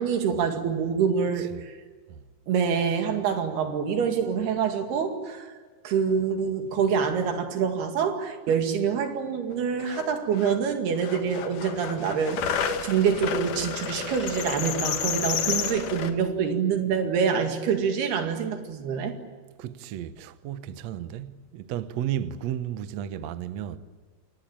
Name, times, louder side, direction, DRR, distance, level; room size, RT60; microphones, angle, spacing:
voice 1, 0.0-1.8 2.5-5.5 5.8-19.2, right 6 dB, 90° right, 4.2 m, -26 dB
sound 1, 9.5-9.6 9.8-10.6 10.9-16.1, left 7 dB, 65° left, 2.8 m, -31 dB
voice 2, 19.6-23.8, right 10 dB, 70° right, 1.6 m, -33 dB
27.5 x 20.0 x 9.0 m
omnidirectional pair, 4.4 m